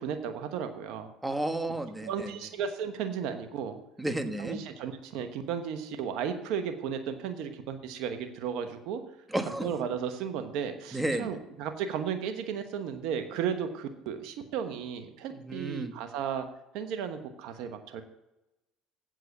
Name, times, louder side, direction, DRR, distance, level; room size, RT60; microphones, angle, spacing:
voice 1, 0.0-1.1 2.0-3.8 4.4-9.0 9.6-16.4 16.7-18.0, right 7 dB, 70° right, 7 dB, 1.1 m, -34 dB
voice 2, 1.2-2.3 4.0-4.6 9.3-9.8 10.9-11.4 15.3-15.9, right 1 dB, 10° right, 7 dB, 1.4 m, -32 dB
8.1 x 7.7 x 7.1 m, 0.92 s
supercardioid pair, 90°, 0 cm